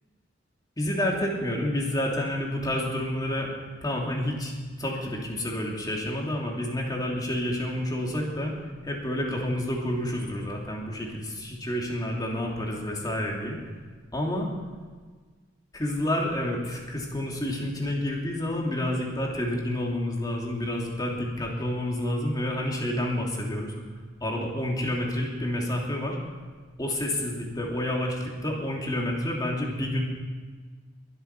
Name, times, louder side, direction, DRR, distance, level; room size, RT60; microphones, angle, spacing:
voice 1, 0.8-3.5 3.8-4.5 4.8-8.5 8.8-13.6 14.1-14.5 15.7-23.7 24.2-26.2 26.8-30.0, left 1 dB, 20° left, -1 dB, 2.9 m, -29 dB
23.0 x 8.1 x 6.1 m, 1.5 s
head